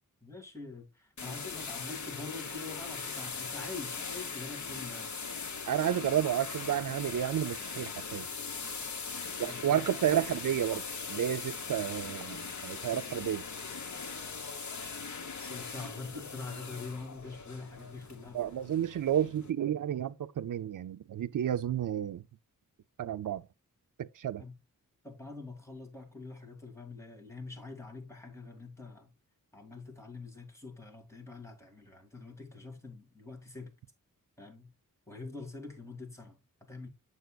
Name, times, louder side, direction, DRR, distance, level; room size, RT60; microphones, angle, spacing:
voice 1, 0.2-5.1 8.8-8.9 9.5-10.0 15.5-18.4 24.4-24.6 25.0-29.1 29.5-33.7 34.4-34.7 35.1-36.9, left 3 dB, 10° left, 2.2 m, -45 dB
sound 1, 1.2-19.5, left 5 dB, 55° left, 1.2 m, -40 dB
voice 2, 5.7-8.3 9.4-10.8 11.1-13.5 18.3-22.2 23.0-23.4 24.0-24.4, right 10 dB, 65° right, 0.5 m, -31 dB
8.1 x 6.7 x 2.3 m
wide cardioid pair, 135°, 34 cm